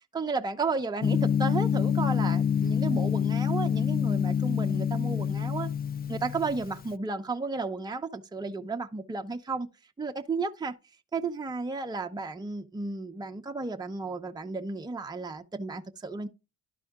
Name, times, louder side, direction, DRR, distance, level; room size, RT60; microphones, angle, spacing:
voice 1, 0.1-5.7 6.1-9.7 10.0-10.7 11.1-16.3, right 3 dB, 15° right, 0.8 m, -33 dB
Gong, 1.0-6.9, left 8 dB, 30° left, 0.4 m, -27 dB
12.0 x 4.1 x 3.6 m
cardioid pair, 90°, 30 cm